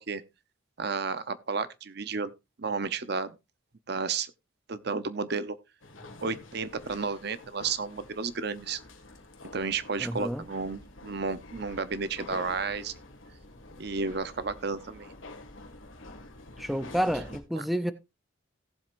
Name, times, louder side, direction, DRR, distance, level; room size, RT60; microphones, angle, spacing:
voice 1, 0.8-2.3 2.6-3.4 3.9-4.3 4.7-5.6 6.2-8.8 9.5-12.9 13.8-15.1, right 4 dB, 55° right, 0.7 m, -32 dB
sound 1, 5.8-17.4, left 2 dB, 90° left, 1.9 m, -48 dB
voice 2, 10.0-10.4 16.6-17.9, equal, ahead, 0.5 m, -29 dB
17.0 x 7.5 x 2.5 m
head